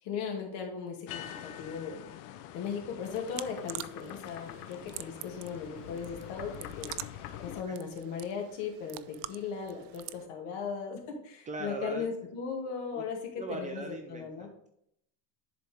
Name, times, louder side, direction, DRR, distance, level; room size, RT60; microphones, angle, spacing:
voice 1, 0.0-2.0 2.5-6.9 7.4-14.5, left 6 dB, 65° left, 1 dB, 2.3 m, -37 dB
sound 1, 1.1-7.6, left 11 dB, 80° left, 0.8 m, -45 dB
sound 2, 3.0-10.3, right 17 dB, 85° right, 0.6 m, -46 dB
voice 2, 11.5-12.1 12.9-13.0 13.4-14.7, right 2 dB, 20° right, 4 dB, 0.4 m, -39 dB
10.5 x 4.2 x 3.5 m, 0.72 s
cardioid pair, 165°, 45 cm